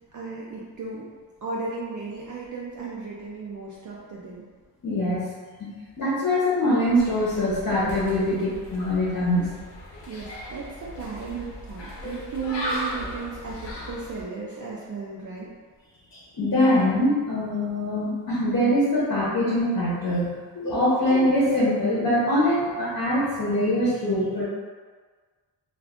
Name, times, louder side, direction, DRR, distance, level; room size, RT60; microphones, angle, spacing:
voice 1, 0.1-1.1 1.4-4.5 10.1-15.5, right 4 dB, 50° right, -5 dB, 0.4 m, -35 dB
voice 2, 4.8-5.3 5.6-5.7 6.0-9.5 16.3-24.4, left 1 dB, 50° left, -8 dB, 0.9 m, -23 dB
sound 1, 7.0-14.2, equal, 75° left, 0.7 m, -37 dB
2.4 x 2.4 x 3.4 m, 1.5 s
wide cardioid pair, 120°, 42 cm